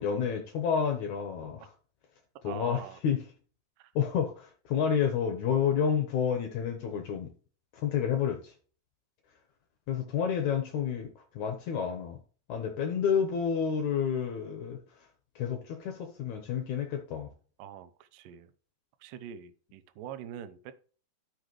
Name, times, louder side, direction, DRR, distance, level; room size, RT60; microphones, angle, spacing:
voice 1, 0.0-1.7 2.4-3.2 4.0-7.3 7.7-8.5 9.9-12.2 12.5-14.8 15.4-17.3, left 7 dB, 70° left, 1.8 m, -30 dB
voice 2, 2.4-3.0 3.8-3.9 17.6-18.5 19.0-20.7, right 10 dB, 90° right, 1.9 m, -44 dB
13.0 x 6.0 x 3.2 m
omnidirectional pair, 5.1 m